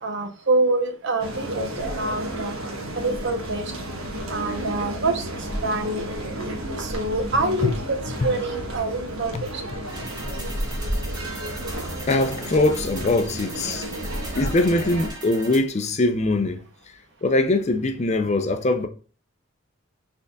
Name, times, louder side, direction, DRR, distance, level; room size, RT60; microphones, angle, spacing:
voice 1, 0.0-2.6 2.9-3.7 4.3-6.2 6.8-9.6, right 2 dB, 60° right, 0.8 m, -26 dB
sound 1, 1.2-15.1, right 1 dB, 75° right, 1.2 m, -32 dB
sound 2, 9.9-15.6, right 1 dB, 20° right, 2.4 m, -40 dB
voice 2, 10.0-10.5 12.1-13.9 14.4-16.6 17.2-18.9, left 2 dB, 35° left, 0.5 m, -22 dB
6.4 x 3.5 x 2.3 m
head